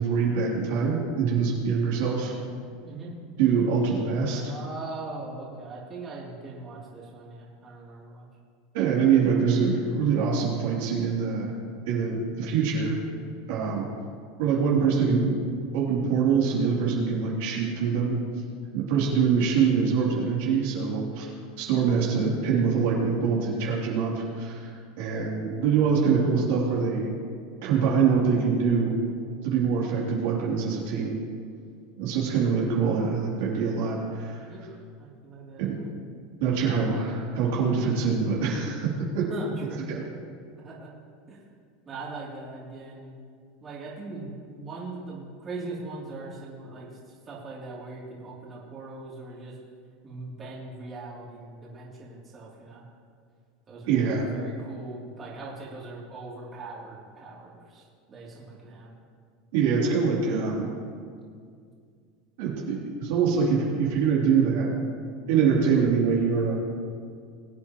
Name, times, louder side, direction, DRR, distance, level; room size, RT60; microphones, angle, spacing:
voice 1, 0.0-2.3 3.4-4.5 8.7-11.5 11.9-12.9 13.5-13.9 14.4-15.4 15.7-18.2 18.7-21.3 21.6-24.6 25.0-27.1 27.6-29.0 29.4-31.2 32.0-34.5 35.6-35.7 36.4-39.3 39.9-40.0 53.9-54.2 59.5-60.7 62.4-64.7 65.3-66.6, right 6 dB, 70° right, -4 dB, 3.2 m, -24 dB
voice 2, 2.8-3.1 4.4-8.2 13.8-13.9 14.4-14.6 25.6-25.9 34.5-34.6 35.0-35.9 39.3-39.8 40.6-40.9 41.3-41.4 41.8-43.2 43.6-49.6 50.0-52.8 53.7-54.0 54.3-58.9, right 3 dB, 30° right, -6 dB, 3.2 m, -40 dB
22.0 x 8.4 x 3.1 m, 2.2 s
supercardioid pair, 130°, 0 cm